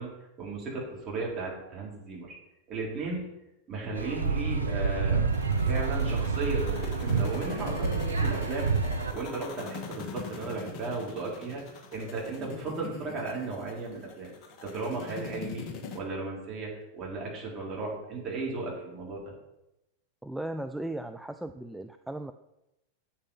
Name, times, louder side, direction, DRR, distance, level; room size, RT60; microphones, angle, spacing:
voice 1, 0.0-2.4 2.7-3.3 3.7-5.3 5.6-8.7 9.1-14.3 14.6-15.7 15.9-19.3, right 3 dB, 30° right, -3 dB, 4.2 m, -35 dB
sound 1, 4.0-9.1, right 4 dB, 75° right, 0.9 m, -28 dB
sound 2, 5.3-16.0, left 5 dB, 40° left, 1.4 m, -42 dB
voice 2, 20.2-22.3, right 1 dB, ahead, 7 dB, 0.4 m, -36 dB
8.3 x 8.1 x 5.6 m, 0.90 s
figure-of-eight pair, 90°, 0 cm